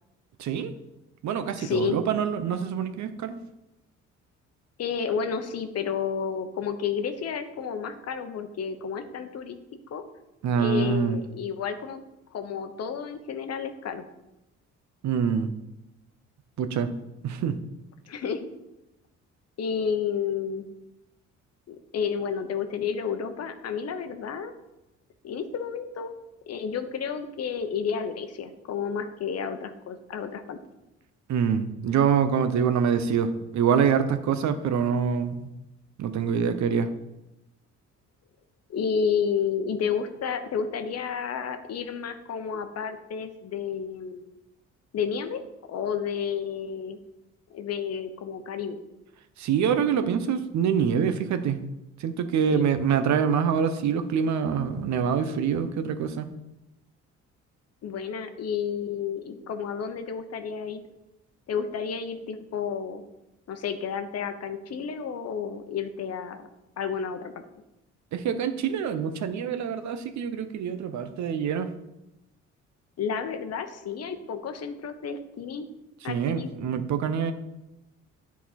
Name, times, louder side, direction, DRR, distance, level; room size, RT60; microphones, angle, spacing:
voice 1, 0.4-0.7 1.2-3.4 10.4-11.2 15.0-15.5 16.6-16.9 17.2-17.6 31.3-35.5 36.0-36.9 49.4-51.6 52.0-56.3 68.1-71.7 76.0-77.3, right 7 dB, 70° right, 9 dB, 0.7 m, -25 dB
voice 2, 1.5-2.0 4.8-9.6 9.9-10.0 10.5-12.0 12.3-14.0 18.1-18.5 19.6-20.7 21.7-24.5 25.2-26.1 26.5-30.6 38.7-44.4 44.9-45.4 45.7-47.0 47.5-48.8 52.5-52.6 57.8-60.8 61.5-63.0 63.5-66.5 66.8-67.3 73.0-75.7 76.0-76.5, left 6 dB, 55° left, 8 dB, 0.8 m, -31 dB
9.2 x 4.1 x 4.2 m, 0.94 s
cardioid pair, 90°, 30 cm